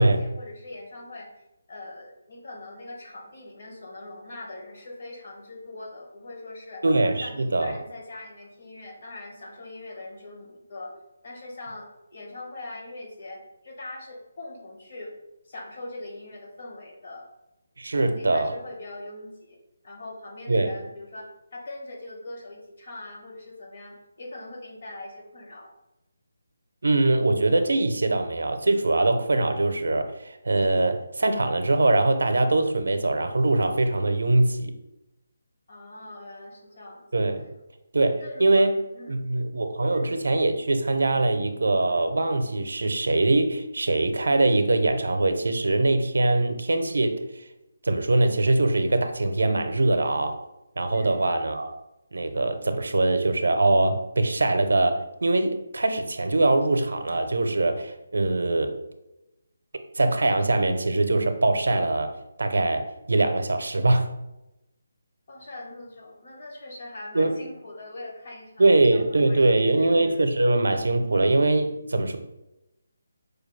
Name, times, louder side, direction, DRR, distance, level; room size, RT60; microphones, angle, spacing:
voice 1, 0.0-6.8 7.2-10.9 11.2-15.2 15.4-17.3 17.9-25.7 35.7-37.3 38.2-39.2 39.9-40.2 50.9-51.3 65.3-70.4, left 2 dB, 40° left, 0 dB, 0.8 m, -42 dB
voice 2, 6.8-7.8 17.8-18.5 20.5-20.7 26.8-34.7 37.1-37.4 37.9-38.7 39.1-47.4 47.8-50.4 50.8-51.7 52.1-58.7 60.0-64.1 67.1-67.4 68.6-72.2, right 2 dB, 90° right, 7 dB, 0.5 m, -22 dB
4.8 x 2.3 x 3.2 m, 0.93 s
hypercardioid pair, 180°, 0 cm